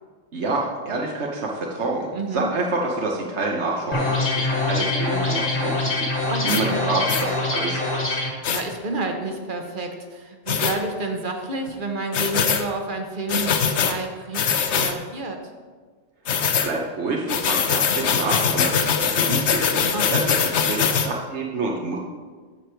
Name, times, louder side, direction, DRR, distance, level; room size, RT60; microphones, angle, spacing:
voice 1, 0.3-2.1 2.3-6.1 6.4-8.1 16.6-20.2 20.7-22.0, right 3 dB, 90° right, -1 dB, 1.3 m, -27 dB
voice 2, 2.1-2.5 6.3-6.7 8.5-15.4 19.9-20.4, right 2 dB, 50° right, 4 dB, 1.2 m, -30 dB
sound 1, 3.9-8.3, left 2 dB, 50° left, 2.1 m, -24 dB
sound 2, 6.5-6.6 7.1-7.3 8.4-8.6 10.5-10.8 12.1-12.6 13.3-13.9 14.3-14.9 16.3-16.7 17.3-21.1, left 7 dB, 80° left, 1.0 m, -22 dB
14.5 x 5.1 x 4.5 m, 1.5 s
omnidirectional pair, 1.1 m